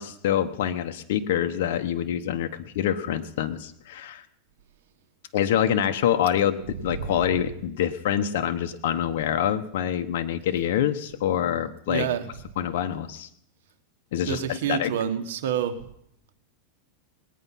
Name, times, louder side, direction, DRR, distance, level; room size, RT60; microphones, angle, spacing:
voice 1, 0.0-4.2 5.3-12.1 12.6-13.3 14.1-14.9, left 10 dB, 70° left, 7 dB, 1.0 m, -26 dB
voice 2, 11.9-12.3 14.3-15.7, right 9 dB, 80° right, 7 dB, 1.5 m, -27 dB
20.0 x 9.3 x 5.7 m, 0.73 s
supercardioid pair, 140°, 0 cm